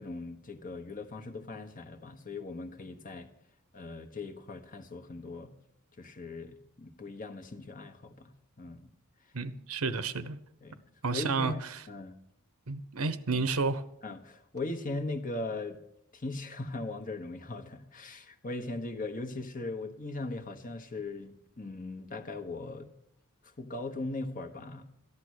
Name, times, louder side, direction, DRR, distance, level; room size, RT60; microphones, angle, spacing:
voice 1, 0.0-3.3 3.7-5.5 6.0-8.9 9.9-10.0 10.6-10.8 11.1-11.6 11.9-12.2 13.3-13.5 14.0-15.8 16.1-22.9 23.6-25.0, left 2 dB, 40° left, 1.2 m, -39 dB
voice 2, 9.3-10.4 11.0-11.5 12.7-13.8, right 4 dB, 85° right, 1.0 m, -31 dB
14.0 x 11.0 x 6.4 m
head